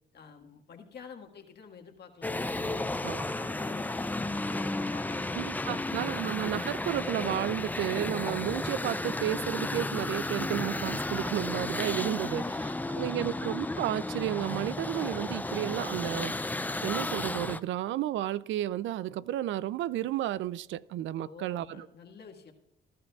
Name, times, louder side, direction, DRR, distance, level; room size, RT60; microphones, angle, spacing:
voice 1, 0.1-2.3 2.6-5.9 12.1-13.3 21.2-22.5, left 6 dB, 55° left, 1.7 m, -49 dB
sound 1, 2.2-17.6, left 2 dB, 10° left, 0.4 m, -33 dB
sound 2, 3.1-17.2, right 3 dB, 40° right, 1.6 m, -56 dB
voice 2, 5.3-12.4 12.9-16.4 16.8-21.9, right 13 dB, 75° right, 0.4 m, -32 dB
19.0 x 12.0 x 2.4 m
cardioid pair, 90°, 20 cm